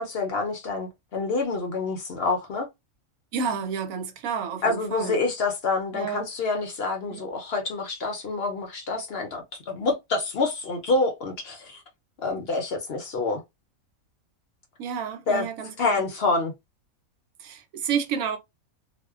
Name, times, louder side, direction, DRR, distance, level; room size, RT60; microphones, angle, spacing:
voice 1, 0.0-2.7 4.6-11.8 12.2-13.4 15.3-15.5 15.8-16.5, left 3 dB, 60° left, 0.7 m, -27 dB
voice 2, 3.3-5.2 5.9-6.3 7.1-7.2 14.8-16.0 17.4-18.4, right 6 dB, 75° right, 1.0 m, -30 dB
2.5 x 2.1 x 2.3 m
omnidirectional pair, 1.5 m